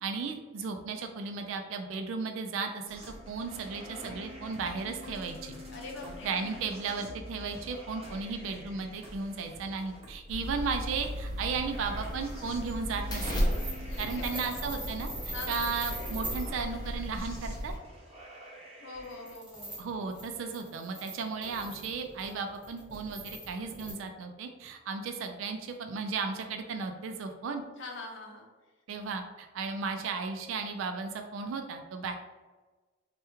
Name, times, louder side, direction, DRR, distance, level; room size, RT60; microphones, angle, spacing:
voice 1, 0.0-5.5 6.2-13.4 14.0-17.7 19.8-27.6 28.9-32.1, right 4 dB, 75° right, 6 dB, 0.3 m, -35 dB
sound 1, 2.9-19.3, equal, 30° right, 0.6 m, -47 dB
voice 2, 5.7-6.3 13.9-14.6 15.3-15.7 18.8-19.8 27.8-28.5, left 3 dB, 65° left, 0 dB, 0.6 m, -43 dB
sound 2, 10.3-17.8, equal, 20° left, 0.5 m, -35 dB
sound 3, 13.5-16.5 19.0-23.9, right 1 dB, 5° right, 1.0 m, -41 dB
3.4 x 2.2 x 3.0 m, 1.3 s
head